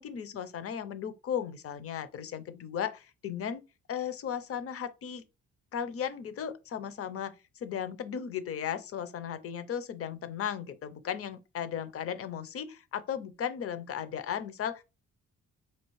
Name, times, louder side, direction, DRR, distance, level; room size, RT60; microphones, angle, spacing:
voice 1, 0.0-3.6 3.9-5.2 5.7-7.3 7.6-14.8, left 8 dB, 50° left, 0.6 m, -36 dB
4.5 x 2.4 x 3.1 m
cardioid pair, 90°, 30 cm